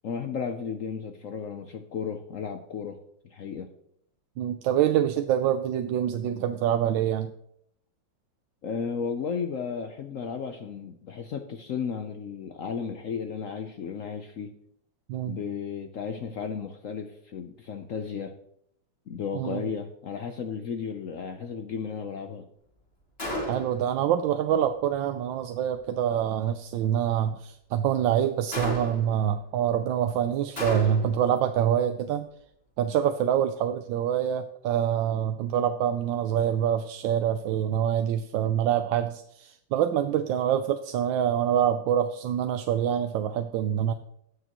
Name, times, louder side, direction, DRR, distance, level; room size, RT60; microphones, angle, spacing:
voice 1, 0.0-3.0 3.2-3.7 8.6-14.5 15.3-18.3 19.1-22.5, left 6 dB, 65° left, 6 dB, 0.8 m, -34 dB
voice 2, 4.4-7.3 15.1-15.4 19.3-19.6 23.5-32.3 32.8-43.9, right 10 dB, 80° right, 8 dB, 1.3 m, -26 dB
Gunshot gunfire, 23.2-23.9 28.5-29.2 30.6-31.2, left 1 dB, 30° left, 2.7 m, -32 dB
18.0 x 6.7 x 3.0 m, 0.70 s
omnidirectional pair, 2.1 m